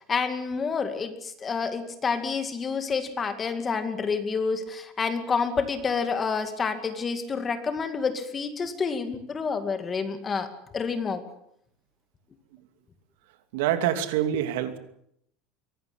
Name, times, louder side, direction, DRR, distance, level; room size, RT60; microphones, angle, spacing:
voice 1, 0.1-10.5 10.7-11.2, left 5 dB, 15° left, 8 dB, 2.2 m, -28 dB
voice 2, 13.5-14.8, right 11 dB, 80° right, 9 dB, 2.7 m, -26 dB
23.5 x 18.0 x 8.6 m, 0.73 s
cardioid pair, 175°, 0 cm